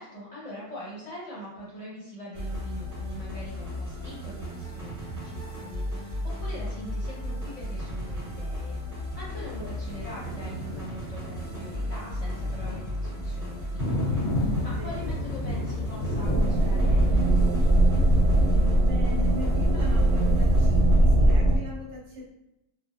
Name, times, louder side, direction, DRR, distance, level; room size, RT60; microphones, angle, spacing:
voice 1, 0.0-18.0, equal, 30° left, -8 dB, 0.8 m, -43 dB
sound 1, 2.3-21.5, equal, 35° right, 1.7 m, -35 dB
Thunder, 9.1-18.8, left 1 dB, 85° left, 1.1 m, -34 dB
voice 2, 14.6-15.1 18.8-22.2, left 2 dB, 70° right, -5 dB, 1.4 m, -40 dB
sound 2, 16.2-21.6, right 1 dB, 90° right, 1.1 m, -20 dB
3.2 x 2.1 x 2.4 m, 0.90 s
omnidirectional pair, 1.5 m